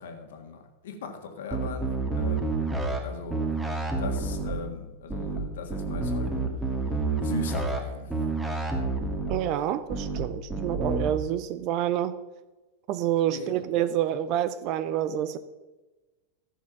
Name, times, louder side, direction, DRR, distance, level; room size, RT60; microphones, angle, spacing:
voice 1, 0.0-1.9 2.2-2.4 3.0-3.4 4.0-6.4 7.2-8.2 13.3-13.7, left 5 dB, 60° left, 5 dB, 1.7 m, -39 dB
sound 1, 1.5-3.0 3.3-4.5 5.1-5.4 5.7-7.8 8.1-9.3 9.9-10.2 10.5-11.1, right 3 dB, 10° right, 1.9 m, -29 dB
voice 2, 9.3-12.1 12.9-15.4, right 11 dB, 40° right, 14 dB, 0.6 m, -28 dB
14.5 x 6.5 x 5.9 m, 1.1 s
figure-of-eight pair, 90°, 0 cm